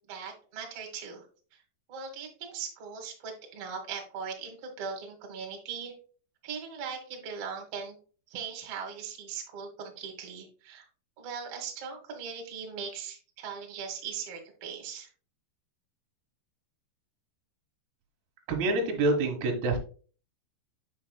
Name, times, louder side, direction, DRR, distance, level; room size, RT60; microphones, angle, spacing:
voice 1, 0.1-1.3 1.5-1.6 1.9-5.9 6.4-7.9 8.3-10.9 11.2-15.1, right 6 dB, 85° right, 2 dB, 1.3 m, -39 dB
voice 2, 18.5-19.8, right 2 dB, 65° right, 2 dB, 3.1 m, -26 dB
7.3 x 7.2 x 2.3 m, 0.39 s
omnidirectional pair, 5.6 m